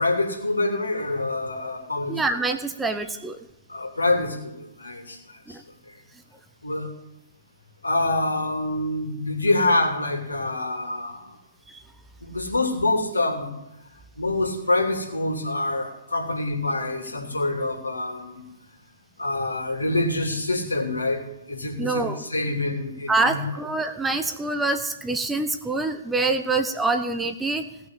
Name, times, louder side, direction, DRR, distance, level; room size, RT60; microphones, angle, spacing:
voice 1, 0.0-2.2 3.7-5.2 5.5-5.6 6.6-6.9 7.8-11.4 12.2-13.5 14.2-18.4 19.2-21.2 21.5-23.4, left 2 dB, 75° left, 2 dB, 2.9 m, -26 dB
voice 2, 2.1-3.5 5.5-5.6 11.7-11.8 21.8-22.2 23.1-27.6, right 3 dB, 5° right, 6 dB, 0.8 m, -25 dB
17.0 x 6.3 x 7.8 m, 0.93 s
figure-of-eight pair, 120°, 0 cm